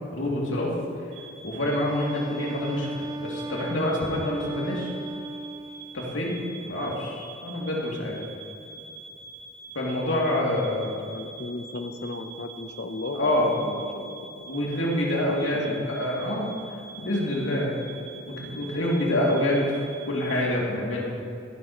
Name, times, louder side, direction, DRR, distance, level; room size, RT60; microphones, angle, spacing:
voice 1, 0.1-0.7 1.4-2.9 3.2-4.9 5.9-8.2 9.7-10.8 13.1-13.5 14.5-16.5 17.0-17.8 18.3-21.1, left 1 dB, 80° left, -4 dB, 2.7 m, -26 dB
sound 1, 1.1-20.4, right 4 dB, 80° right, 1.7 m, -45 dB
Wind instrument woodwind instrument, 1.8-6.2, right 2 dB, 20° right, 0.4 m, -36 dB
voice 2, 10.8-14.5 15.4-16.1, left 2 dB, 60° left, 7 dB, 0.8 m, -36 dB
16.5 x 11.5 x 3.1 m, 2.6 s
head